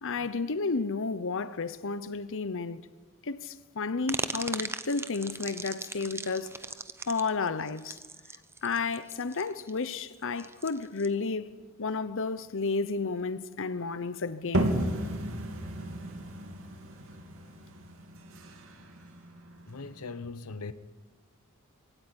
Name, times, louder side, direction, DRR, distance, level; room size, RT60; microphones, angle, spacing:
voice 1, 0.0-2.8 3.2-6.5 7.1-8.0 8.6-11.4 11.8-14.8, left 4 dB, 60° left, 0.9 m, -32 dB
sound 1, 4.1-11.1, right 3 dB, 10° right, 0.9 m, -38 dB
sound 2, 14.5-20.0, right 1 dB, 65° right, 3.2 m, -33 dB
voice 2, 19.7-20.7, left 4 dB, 90° left, 1.1 m, -40 dB
23.0 x 17.0 x 9.9 m
head